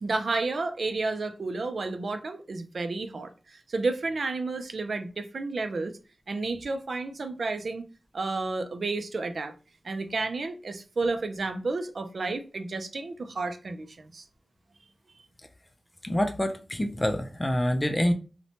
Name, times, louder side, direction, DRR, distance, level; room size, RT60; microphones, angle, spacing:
voice 1, 0.0-6.0 6.3-7.8 8.1-9.5 9.8-14.2, right 3 dB, 80° right, 0.4 m, -31 dB
voice 2, 16.0-18.1, equal, 20° left, 0.4 m, -26 dB
2.9 x 2.1 x 2.7 m
wide cardioid pair, 85°, 0 cm